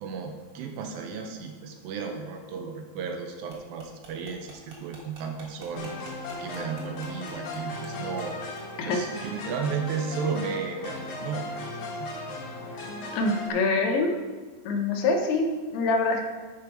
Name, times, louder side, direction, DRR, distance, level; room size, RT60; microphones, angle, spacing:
voice 1, 0.0-6.0 6.4-8.4 8.9-12.1, right 5 dB, 80° right, 4 dB, 2.3 m, -34 dB
sound 1, 3.5-7.9 8.2-8.3 8.6-8.7 9.0-9.1, right 3 dB, 50° right, 1.9 m, -49 dB
sound 2, 5.8-13.5, left 2 dB, 70° left, 1.4 m, -37 dB
voice 2, 13.1-14.2 14.7-16.2, left 3 dB, 90° left, 2 dB, 3.0 m, -25 dB
10.5 x 5.2 x 4.5 m, 1.3 s
omnidirectional pair, 4.5 m